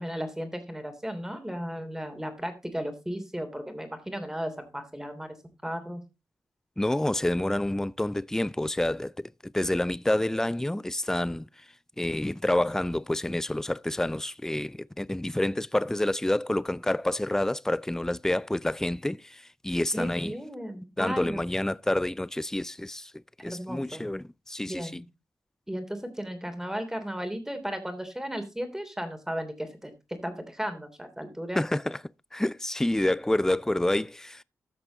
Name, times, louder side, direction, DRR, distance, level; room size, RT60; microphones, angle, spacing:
voice 1, 0.0-5.3 5.6-6.0 19.9-21.4 23.4-24.0 24.7-25.0 25.7-31.6, equal, 10° right, 3.1 m, -35 dB
voice 2, 6.8-11.7 12.0-20.3 21.0-25.0 31.5-32.0 32.3-34.4, left 1 dB, 10° left, 0.4 m, -28 dB
14.0 x 6.0 x 4.1 m
supercardioid pair, 45°, 6 cm